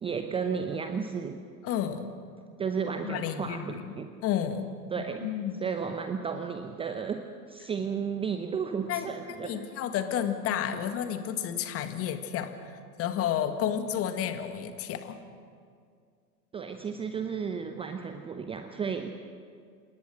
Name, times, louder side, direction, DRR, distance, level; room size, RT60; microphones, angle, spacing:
voice 1, 0.0-1.4 2.6-4.2 4.9-5.3 5.6-9.6 10.7-10.8 16.5-19.2, right 6 dB, 10° right, 7 dB, 0.8 m, -33 dB
voice 2, 1.6-2.1 3.0-3.9 4.2-4.7 5.0-5.6 8.9-15.2, left 9 dB, 30° left, 8 dB, 1.8 m, -31 dB
27.0 x 19.5 x 6.4 m, 2.2 s
figure-of-eight pair, 95°, 48 cm